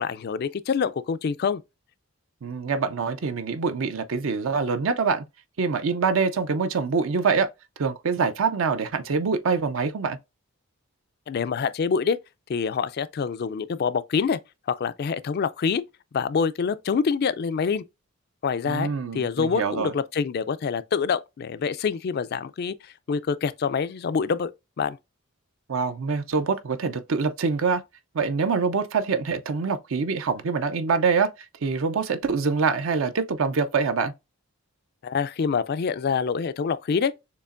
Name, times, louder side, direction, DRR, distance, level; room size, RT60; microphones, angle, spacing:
voice 1, 0.0-1.6 11.3-12.2 12.5-14.4 14.7-15.8 16.1-17.8 18.4-18.9 19.1-24.5 24.8-25.0 35.0-37.1, left 6 dB, 45° left, 0.3 m, -26 dB
voice 2, 2.4-5.2 5.6-7.5 7.8-10.2 18.7-19.9 25.7-27.8 28.1-34.1, right 5 dB, 65° right, 0.5 m, -25 dB
6.7 x 2.9 x 2.4 m
head